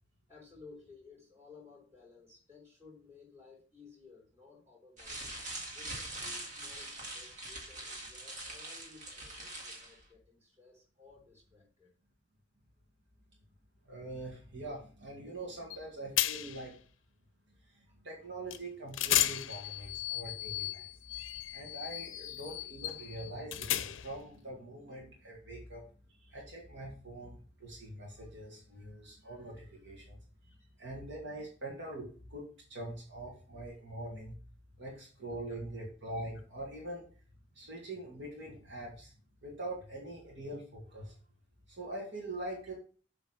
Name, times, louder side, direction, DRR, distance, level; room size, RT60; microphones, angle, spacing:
voice 1, 0.3-5.4 5.7-11.9 17.9-18.0 30.6-30.7 34.9-35.0 35.3-35.6, left 4 dB, 10° right, -3 dB, 4.7 m, -57 dB
sound 1, 5.0-10.0, right 1 dB, 40° right, 2.1 m, -43 dB
voice 2, 13.8-16.8 17.5-20.9 21.5-25.8 26.1-30.2 30.4-34.4 34.8-37.1 37.5-39.1 39.4-41.2 41.7-42.7, right 1 dB, 65° right, -2 dB, 2.2 m, -44 dB
sound 2, 15.7-15.8 16.2-16.7 18.5-18.6 18.9-24.2, left 13 dB, 70° left, 0.5 m, -34 dB
7.8 x 3.9 x 5.9 m, 0.39 s
head